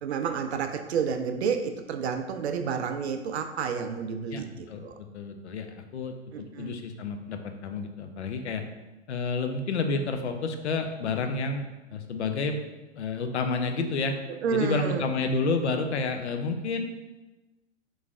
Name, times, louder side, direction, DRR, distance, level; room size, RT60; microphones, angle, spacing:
voice 1, 0.0-5.0 6.3-6.8 14.4-15.1, right 6 dB, 65° right, 7 dB, 0.5 m, -30 dB
voice 2, 4.3-8.6 9.1-12.6 12.9-14.2 14.5-16.8, left 3 dB, 70° left, 6 dB, 0.5 m, -30 dB
3.8 x 3.1 x 2.4 m, 1.1 s
figure-of-eight pair, 100°, 35 cm